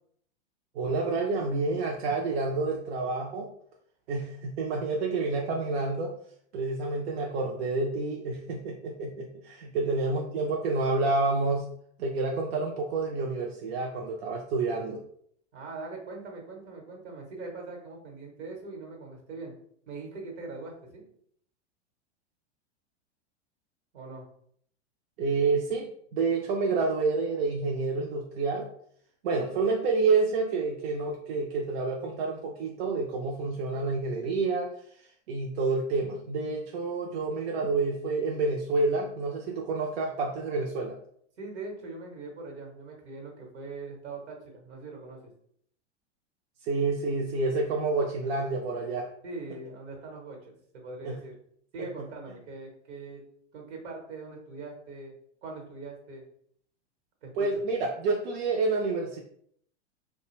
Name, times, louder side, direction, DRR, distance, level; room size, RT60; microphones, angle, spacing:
voice 1, 0.7-3.5 4.1-6.1 6.5-11.7 12.0-15.0 25.2-28.7 29.2-34.7 35.3-41.0 46.6-49.1 51.0-51.2 57.3-59.2, right 3 dB, 65° right, 0 dB, 0.5 m, -28 dB
voice 2, 15.5-19.5 19.9-21.0 23.9-24.3 41.4-45.3 49.2-51.3 51.7-53.2 53.5-55.1 55.4-56.2 57.2-57.5, right 3 dB, 80° right, 1 dB, 1.1 m, -42 dB
2.4 x 2.2 x 3.0 m, 0.65 s
hypercardioid pair, 120°, 34 cm